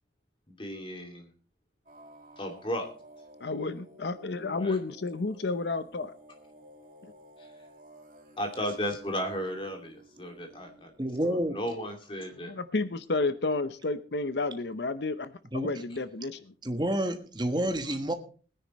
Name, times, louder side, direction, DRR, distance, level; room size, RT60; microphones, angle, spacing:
voice 1, 0.5-1.3 2.4-2.9 4.5-4.8 7.4-7.5 8.4-10.9 11.2-12.5 17.8-17.9, equal, 30° left, 4 dB, 2.5 m, -35 dB
sound 1, 1.9-11.7, right 1 dB, 45° right, 2.3 m, -54 dB
voice 2, 3.4-6.1 12.4-16.4, left 3 dB, 70° left, 13 dB, 0.7 m, -31 dB
voice 3, 11.0-11.6 15.5-15.7 16.6-18.1, right 1 dB, 25° right, 7 dB, 1.3 m, -29 dB
21.5 x 10.0 x 3.1 m, 0.38 s
head